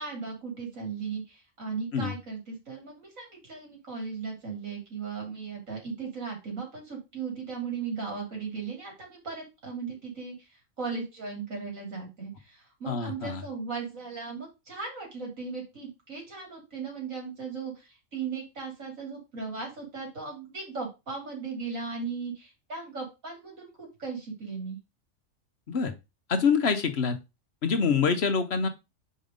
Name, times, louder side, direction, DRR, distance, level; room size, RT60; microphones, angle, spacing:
voice 1, 0.0-10.3 10.8-24.8, right 5 dB, 90° right, 0 dB, 3.6 m, -37 dB
voice 2, 12.9-13.4 25.7-25.9 26.3-27.2 27.6-28.7, left 5 dB, 55° left, 8 dB, 1.2 m, -25 dB
5.3 x 5.1 x 5.1 m, 0.25 s
omnidirectional pair, 1.3 m